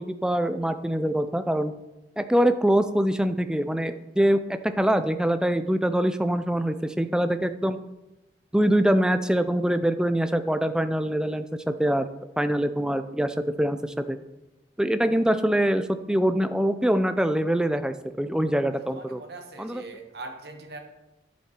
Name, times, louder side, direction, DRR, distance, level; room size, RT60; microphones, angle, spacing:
voice 1, 0.0-1.7 2.2-7.8 8.5-12.1 12.4-14.2 14.8-19.2 19.6-19.8, right 1 dB, 5° right, 10 dB, 0.4 m, -24 dB
voice 2, 18.9-20.8, right 3 dB, 60° right, 4 dB, 1.5 m, -41 dB
10.0 x 7.2 x 4.4 m, 0.98 s
head